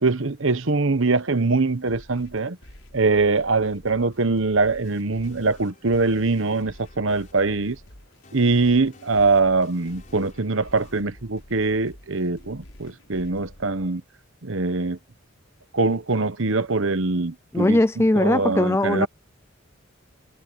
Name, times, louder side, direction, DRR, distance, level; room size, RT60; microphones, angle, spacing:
voice 1, 0.0-2.6 2.9-7.8 8.3-14.0 14.4-15.0 15.7-17.8 18.2-19.1, right 3 dB, 70° right, 1.1 m, -23 dB
sound 1, 1.9-13.9, equal, 85° left, 5.2 m, -48 dB
sound 2, 4.8-12.8, left 2 dB, 40° left, 5.1 m, -54 dB
voice 2, 17.5-19.1, left 1 dB, 10° left, 0.5 m, -20 dB
head